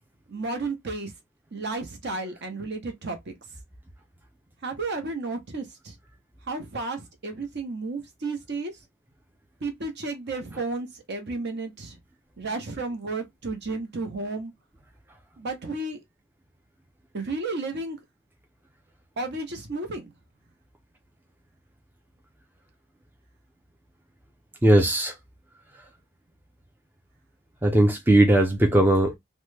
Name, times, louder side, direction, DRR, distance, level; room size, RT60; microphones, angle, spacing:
voice 1, 0.3-1.1 1.5-3.3 4.6-5.9 6.5-8.7 9.6-11.9 12.4-14.5 15.4-16.0 17.1-18.0 19.2-20.1, right 3 dB, 50° right, 0.8 m, -32 dB
voice 2, 24.6-25.1 27.6-29.1, right 1 dB, 10° right, 0.4 m, -18 dB
3.0 x 2.2 x 3.2 m
head